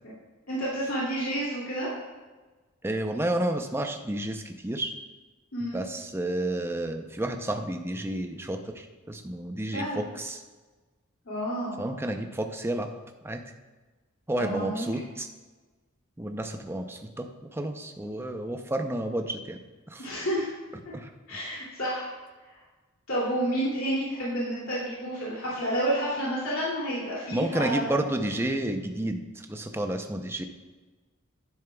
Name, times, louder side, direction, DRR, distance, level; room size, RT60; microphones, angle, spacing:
voice 1, 0.5-1.9 5.5-5.8 9.7-10.0 11.2-11.8 14.4-14.9 20.0-20.5 21.3-22.1 23.1-27.9, right 1 dB, 70° left, -7 dB, 2.7 m, -30 dB
voice 2, 2.8-4.9 5.7-10.4 11.8-12.9 13.2-13.4 14.3-15.3 16.2-19.6 19.9-20.1 20.9-21.1 27.3-30.4, right 1 dB, 10° right, 5 dB, 0.6 m, -31 dB
10.5 x 9.9 x 2.3 m, 1.2 s
head